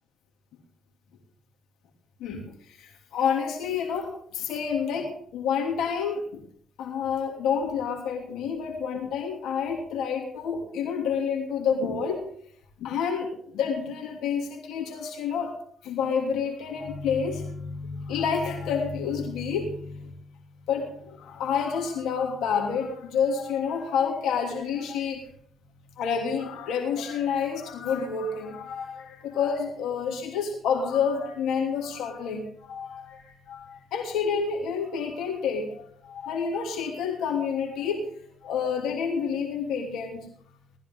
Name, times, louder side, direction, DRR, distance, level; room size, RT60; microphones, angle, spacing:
voice 1, 2.2-6.4 6.8-12.2 12.8-15.5 15.8-20.1 20.7-25.2 26.0-38.1 38.4-40.3, left 6 dB, 85° left, 1 dB, 2.9 m, -29 dB
19.0 x 14.0 x 3.8 m, 0.63 s
cardioid pair, 90°, 0 cm